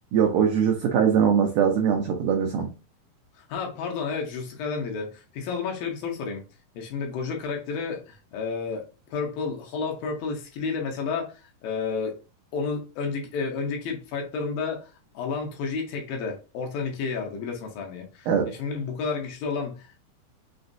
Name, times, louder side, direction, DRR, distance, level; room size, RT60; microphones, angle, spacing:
voice 1, 0.1-2.7 18.3-18.5, right 7 dB, 85° right, 1.8 m, -22 dB
voice 2, 3.3-6.4 6.7-8.8 9.1-12.2 12.5-20.0, left 5 dB, 75° left, 2.4 m, -31 dB
6.0 x 2.4 x 2.6 m
omnidirectional pair, 4.4 m